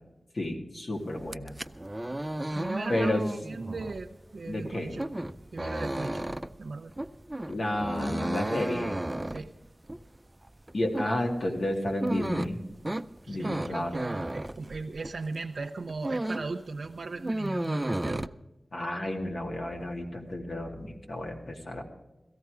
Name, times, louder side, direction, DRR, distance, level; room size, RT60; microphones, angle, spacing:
voice 1, 0.3-1.6 2.9-3.3 4.5-4.9 7.5-9.0 10.7-12.6 13.3-13.9 18.7-21.8, left 1 dB, 65° left, 1 dB, 2.4 m, -31 dB
sound 1, 1.2-15.3 15.6-16.6 16.9-18.3, right 1 dB, 20° right, 0.5 m, -34 dB
voice 2, 2.5-5.1 5.5-6.3 6.6-6.9 9.3-9.5 13.2-18.3, right 3 dB, 80° right, 1 dB, 0.7 m, -37 dB
17.5 x 14.0 x 4.9 m, 1.0 s
wide cardioid pair, 65°, 0 cm